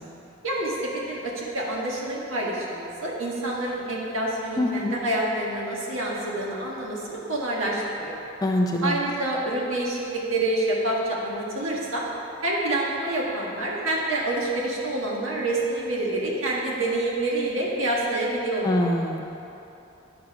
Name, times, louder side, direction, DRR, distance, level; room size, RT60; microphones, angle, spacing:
voice 1, 0.4-8.2 8.8-12.0 12.4-18.8, right 1 dB, 90° right, -3 dB, 1.5 m, -27 dB
voice 2, 4.6-4.9 8.4-9.0 18.6-19.2, left 1 dB, 20° left, 1 dB, 0.5 m, -24 dB
9.9 x 5.2 x 4.8 m, 3.0 s
head